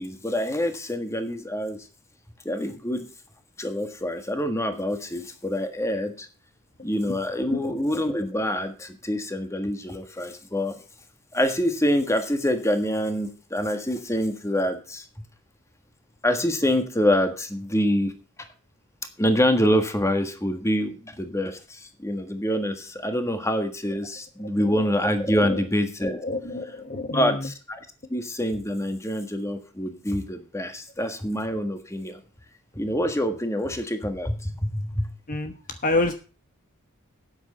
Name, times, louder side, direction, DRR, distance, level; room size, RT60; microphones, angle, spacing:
voice 1, 0.0-1.8 2.4-3.1 3.6-6.3 6.8-10.7 11.3-15.0 16.2-18.1 19.2-26.2 27.1-27.8 28.1-32.2 32.7-35.1, equal, 15° left, 7 dB, 1.6 m, -26 dB
voice 2, 26.2-27.5 35.3-35.5 35.8-36.1, left 2 dB, 40° left, 7 dB, 1.1 m, -27 dB
13.0 x 9.2 x 4.3 m, 0.36 s
head